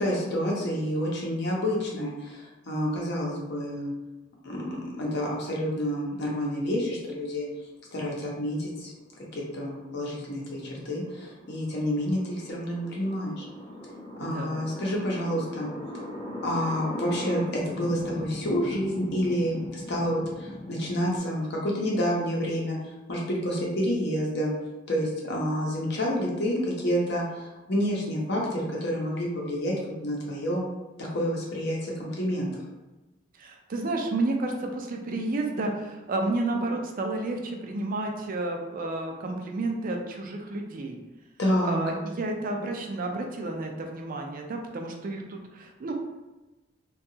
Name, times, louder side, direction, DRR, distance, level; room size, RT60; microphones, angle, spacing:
voice 1, 0.0-3.9 4.4-7.5 7.9-8.9 9.3-13.5 14.1-15.7 16.4-22.8 23.1-24.5 24.9-29.7 30.0-30.6 31.0-32.5 41.4-41.8, equal, 65° left, -3 dB, 0.7 m, -29 dB
sound 1, 8.6-21.2, left 1 dB, 25° left, 0.4 m, -40 dB
voice 2, 14.2-14.5 33.4-41.0 41.6-45.9, right 2 dB, 50° right, 2 dB, 0.4 m, -31 dB
2.8 x 2.3 x 2.7 m, 1.1 s
head